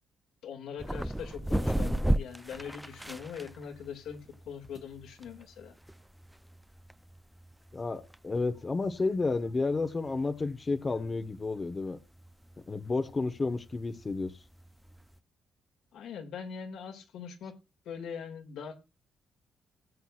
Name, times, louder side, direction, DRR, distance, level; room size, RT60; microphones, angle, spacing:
voice 1, 0.4-5.8 15.9-17.5 17.9-18.8, left 7 dB, 80° left, 2.3 m, -42 dB
sound 1, 0.8-15.2, right 1 dB, 5° right, 0.5 m, -36 dB
voice 2, 7.7-12.0 12.7-14.4, left 3 dB, 30° left, 1.0 m, -31 dB
18.5 x 8.1 x 2.4 m
cardioid pair, 90°, 0 cm